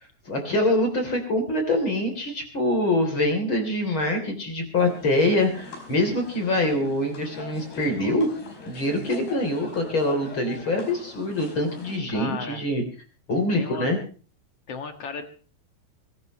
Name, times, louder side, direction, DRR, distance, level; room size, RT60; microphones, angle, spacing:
voice 1, 0.3-8.3 8.7-12.8 13.3-14.0, left 1 dB, 35° left, 4 dB, 3.8 m, -24 dB
sound 1, 4.8-12.0, left 3 dB, 80° left, 6.8 m, -43 dB
voice 2, 12.1-12.6 13.5-13.9 14.7-15.3, left 5 dB, 50° left, 7 dB, 2.1 m, -34 dB
23.5 x 16.0 x 3.1 m, 0.38 s
omnidirectional pair, 4.5 m